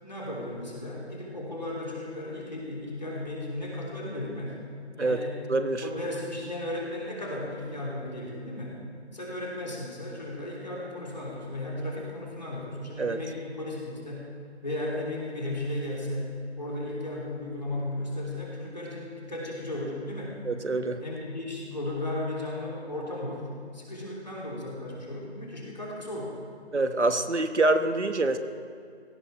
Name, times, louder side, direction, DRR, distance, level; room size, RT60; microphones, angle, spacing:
voice 1, 0.0-4.5 5.0-5.4 5.8-8.7 9.1-14.3 14.6-16.3 16.6-20.4 21.0-23.4 23.7-26.3, left 1 dB, 40° left, -4 dB, 3.3 m, -35 dB
voice 2, 5.5-5.8 13.0-13.2 20.4-21.0 26.7-28.4, right 2 dB, 85° right, 8 dB, 1.2 m, -25 dB
17.5 x 14.0 x 4.4 m, 2.2 s
figure-of-eight pair, 180°, 34 cm